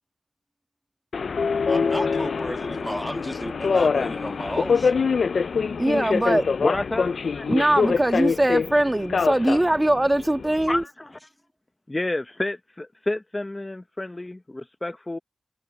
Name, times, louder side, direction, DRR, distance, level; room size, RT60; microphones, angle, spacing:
Subway metro underground, 1.1-10.8, left 5 dB, 80° left, 0.4 m, -25 dB
voice 1, 1.7-5.1, equal, ahead, 1.6 m, -33 dB
voice 2, 5.8-6.5 7.5-10.8, right 1 dB, 15° right, 1.4 m, -21 dB
voice 3, 6.6-7.4 7.8-7.9 10.7-11.2 11.9-15.2, left 2 dB, 20° left, 0.7 m, -30 dB
wide cardioid pair, 125°, 0 cm